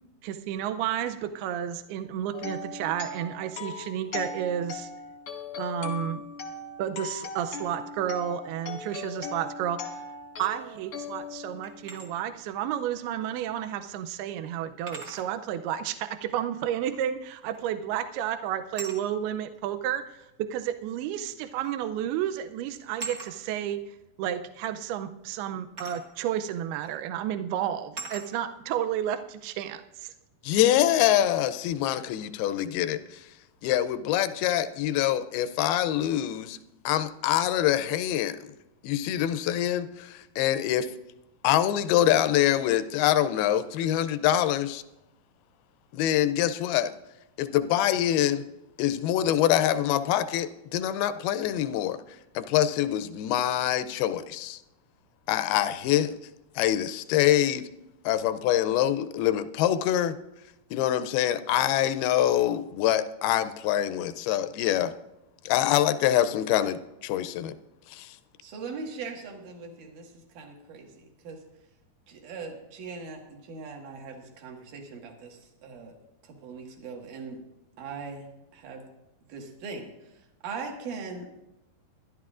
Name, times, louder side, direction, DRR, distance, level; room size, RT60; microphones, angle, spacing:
voice 1, 0.2-4.9 5.5-6.2 6.8-10.0 10.4-30.1, right 10 dB, 85° right, 9 dB, 2.6 m, -31 dB
sound 1, 2.3-12.2, left 4 dB, 60° left, 1.5 m, -39 dB
sound 2, 11.6-12.1 13.6-13.7 14.9-15.3 17.5-17.8 18.7-19.0 20.2-20.3 21.6-21.8 22.1-22.3 23.0-23.3 25.8-26.0 26.8-27.0 28.0-28.3, right 3 dB, 45° right, 1.2 m, -40 dB
voice 2, 30.4-33.2 33.6-36.6 36.9-38.4 38.8-40.9 41.4-44.8 45.9-46.9 47.4-48.4 48.8-52.0 52.4-54.6 55.3-56.2 56.6-57.6 58.1-60.2 60.7-64.9 65.5-67.5 67.9-68.2, left 12 dB, 80° left, 13 dB, 2.4 m, -25 dB
voice 3, 68.4-71.4 72.1-76.0 76.2-77.4 77.8-78.3 78.5-78.8 79.3-81.3, right 4 dB, 60° right, 1 dB, 2.9 m, -40 dB
23.5 x 11.5 x 2.5 m, 0.92 s
omnidirectional pair, 4.5 m